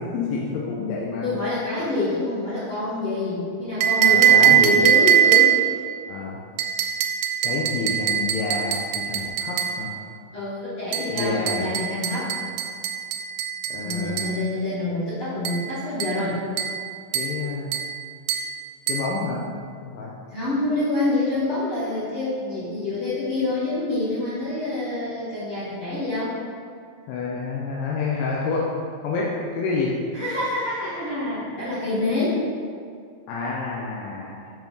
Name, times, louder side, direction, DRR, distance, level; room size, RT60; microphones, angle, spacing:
voice 1, 0.0-1.3 4.0-4.9 6.1-6.4 7.4-9.9 11.1-11.8 13.7-14.3 17.1-17.7 18.9-19.4 19.6-20.1 27.1-28.7 29.0-29.9 33.3-34.4, left 4 dB, 75° left, -4 dB, 2.2 m, -28 dB
voice 2, 1.2-5.6 10.3-12.3 13.8-16.4 20.3-26.3 30.1-32.4, left 2 dB, 55° left, -11 dB, 1.6 m, -26 dB
sound 1, 3.8-5.8 6.6-9.8 10.9-14.4 15.4-15.7 16.0-16.2 16.6-16.8 17.1-17.4 17.7-17.9 18.3-18.5 18.9-19.1, right 9 dB, 90° right, 2.6 m, -21 dB
7.3 x 4.0 x 5.2 m, 2.2 s
omnidirectional pair, 4.5 m